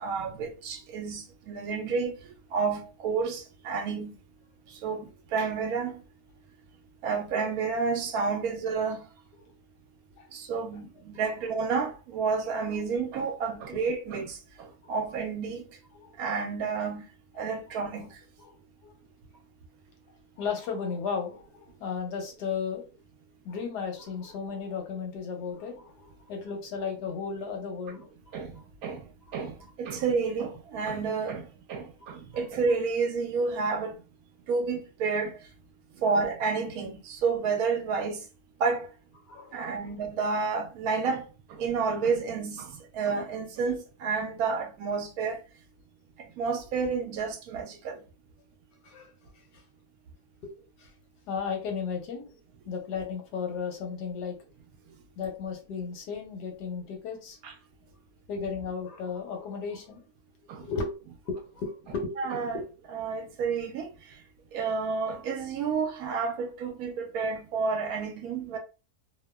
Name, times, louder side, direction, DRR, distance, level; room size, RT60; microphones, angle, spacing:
voice 1, 0.0-2.2 2.5-4.1 4.8-6.0 7.0-9.0 10.3-14.4 14.9-15.6 16.2-17.0 17.4-18.1 28.3-28.5 28.8-29.0 29.3-31.4 31.7-33.9 34.5-35.3 36.0-38.2 38.6-38.9 39.5-41.2 41.5-42.7 42.9-45.4 46.4-48.0 57.4-57.5 60.5-60.6 62.2-62.6 62.9-63.9 64.5-68.6, right 5 dB, 70° right, 1.0 m, -30 dB
voice 2, 20.4-22.8 23.4-28.6 29.3-29.4 32.0-32.1 39.3-40.0 48.8-49.6 50.8-50.9 51.3-52.3 52.7-54.4 55.2-57.4 58.3-60.0 60.5-60.9 61.2-62.7, left 5 dB, 90° left, 1.3 m, -35 dB
2.8 x 2.1 x 2.2 m
omnidirectional pair, 1.7 m